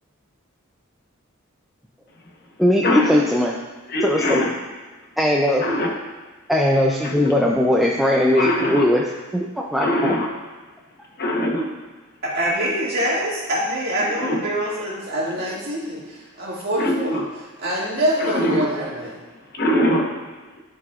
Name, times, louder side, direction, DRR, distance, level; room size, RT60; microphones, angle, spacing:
voice 1, 2.6-3.5 4.0-4.4 5.2-5.7 6.5-10.1, left 1 dB, ahead, -3 dB, 0.4 m, -19 dB
voice 2, 3.9-4.5 5.6-5.9 7.0-7.3 8.4-8.9 9.8-10.3 11.2-11.7 14.2-14.4 16.8-17.2 18.2-18.6 19.5-20.1, equal, 50° left, 0 dB, 1.0 m, -22 dB
voice 3, 12.2-17.2 17.6-19.2, equal, 50° right, -6 dB, 2.1 m, -25 dB
12.0 x 4.8 x 2.4 m, 1.3 s
head